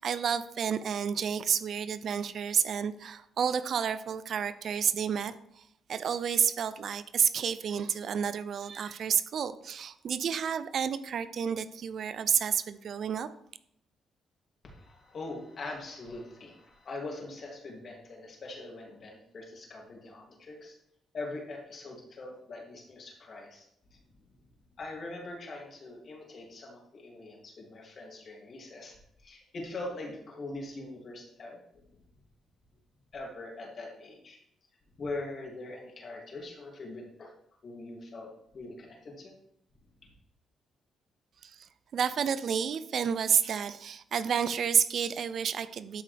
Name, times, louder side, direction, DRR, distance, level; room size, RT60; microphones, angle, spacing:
voice 1, 0.0-5.3 5.9-13.3 41.4-41.5 41.9-46.0, right 7 dB, 60° right, 13 dB, 0.5 m, -30 dB
voice 2, 14.6-20.8 21.1-24.0 24.8-31.9 33.1-34.4 35.0-37.3 37.6-39.3 40.0-40.1, left 2 dB, 45° left, -1 dB, 2.7 m, -42 dB
12.0 x 5.7 x 3.5 m, 0.74 s
cardioid pair, 90°, 0 cm